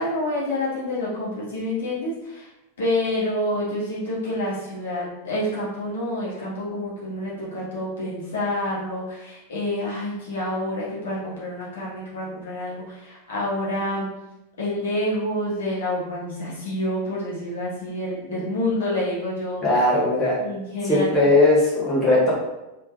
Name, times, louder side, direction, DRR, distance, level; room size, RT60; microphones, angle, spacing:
voice 1, 0.0-2.5 2.8-14.1 14.6-19.6 20.4-21.2, left 1 dB, 65° left, -8 dB, 1.4 m, -28 dB
voice 2, 19.6-20.4 20.9-22.3, left 2 dB, 25° left, -7 dB, 1.2 m, -18 dB
3.5 x 3.2 x 2.4 m, 0.96 s
figure-of-eight pair, 90°, 0 cm